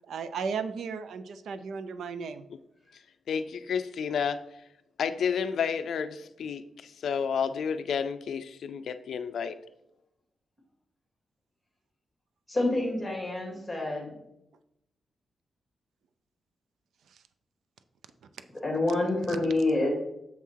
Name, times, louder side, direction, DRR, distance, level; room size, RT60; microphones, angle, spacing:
voice 1, 0.1-2.5, right 5 dB, 90° right, 0.5 m, -35 dB
voice 2, 3.3-4.4 5.0-9.6, left 6 dB, 75° left, 0.4 m, -31 dB
voice 3, 12.5-14.1 18.6-19.9, left 2 dB, 5° left, 2.9 m, -27 dB
7.0 x 5.6 x 4.6 m
wide cardioid pair, 145°, 0 cm